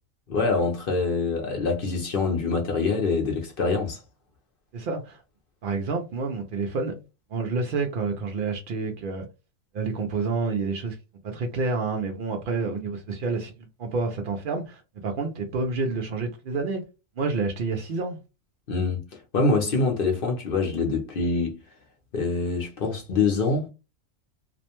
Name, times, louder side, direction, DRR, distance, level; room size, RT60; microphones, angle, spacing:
voice 1, 0.3-4.0 18.7-19.0 19.3-21.6 22.1-23.7, left 3 dB, 50° left, 0.7 m, -25 dB
voice 2, 4.7-5.2 5.6-7.0 7.3-9.3 9.7-11.0 11.2-13.5 13.8-16.8 17.2-18.2, right 4 dB, 70° right, 0.5 m, -28 dB
2.5 x 2.1 x 2.8 m
omnidirectional pair, 1.4 m